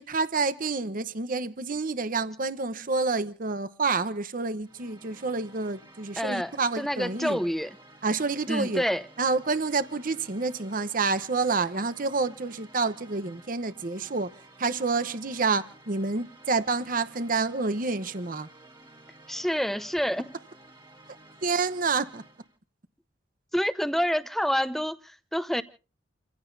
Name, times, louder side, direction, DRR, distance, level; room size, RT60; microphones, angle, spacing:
voice 1, 0.0-7.4 8.0-8.8 9.2-14.3 14.6-18.5 21.4-22.2, right 4 dB, 45° right, 0.9 m, -28 dB
sound 1, 4.6-22.6, right 2 dB, 25° right, 2.0 m, -53 dB
voice 2, 6.2-7.8 8.5-9.0 19.3-20.3 23.5-25.6, equal, ahead, 0.8 m, -28 dB
29.5 x 16.0 x 2.7 m
head